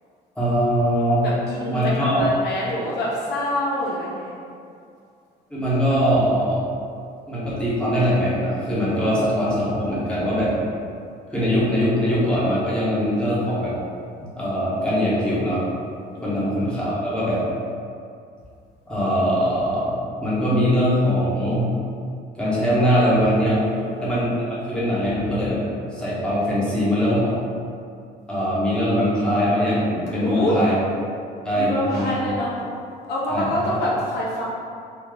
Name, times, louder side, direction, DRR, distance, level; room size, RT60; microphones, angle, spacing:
voice 1, 0.4-1.3 1.7-2.2 5.5-6.6 7.3-10.5 11.3-13.7 14.2-15.6 16.2-17.4 18.9-21.7 22.3-23.6 24.0-24.3 24.7-25.6 25.9-27.3 28.3-30.8 31.4-32.1 33.3-33.7, equal, 5° left, -9 dB, 1.1 m, -21 dB
voice 2, 1.2-4.4 16.2-16.5 23.5-24.0 26.7-27.0 30.1-30.6 31.5-32.7 33.1-34.4, left 1 dB, 75° left, -5 dB, 0.8 m, -26 dB
3.1 x 2.3 x 3.8 m, 2.4 s
cardioid pair, 110°, 17 cm